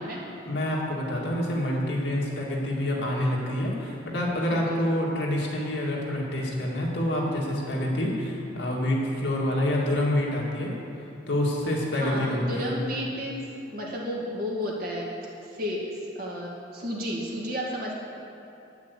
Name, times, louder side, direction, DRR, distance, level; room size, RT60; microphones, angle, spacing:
voice 1, 0.5-10.7 11.3-12.7, left 1 dB, 75° left, -3 dB, 2.1 m, -27 dB
voice 2, 4.5-4.8 12.0-13.5 13.7-17.9, equal, 55° right, -3 dB, 2.0 m, -32 dB
9.3 x 6.0 x 8.1 m, 2.9 s
head